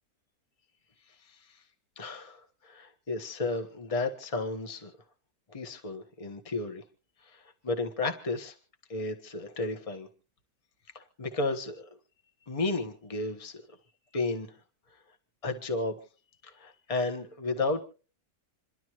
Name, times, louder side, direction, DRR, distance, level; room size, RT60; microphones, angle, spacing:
voice 1, 2.0-4.9 5.5-6.8 7.3-8.5 8.9-10.1 10.9-11.9 12.5-13.6 14.1-14.5 15.4-16.0 16.4-17.8, left 3 dB, 25° left, 6 dB, 1.3 m, -33 dB
28.0 x 12.0 x 3.1 m, 0.38 s
omnidirectional pair, 1.6 m